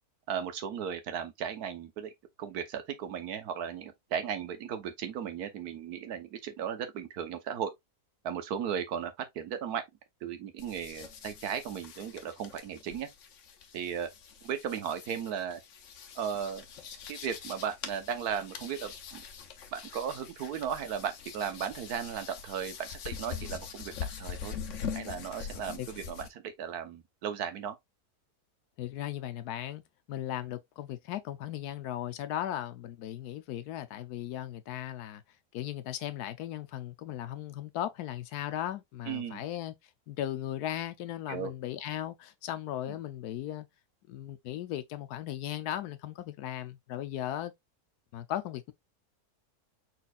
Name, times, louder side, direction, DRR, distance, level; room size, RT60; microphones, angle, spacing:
voice 1, 0.3-2.1 2.4-7.7 8.2-9.8 10.2-13.1 13.7-14.1 14.4-15.6 16.1-16.6 17.1-19.2 19.7-23.9 24.2-24.6 24.9-27.8 39.0-39.4 41.3-41.5 42.8-43.0, right 8 dB, 85° right, 1.4 m, -36 dB
sound 1, 10.6-26.3, left 7 dB, 60° left, 1.1 m, -43 dB
voice 2, 28.8-29.8 30.1-35.2 35.5-39.7 40.1-43.7 44.1-47.5 48.1-48.7, left 12 dB, 85° left, 1.2 m, -37 dB
4.6 x 4.2 x 2.3 m
omnidirectional pair, 1.6 m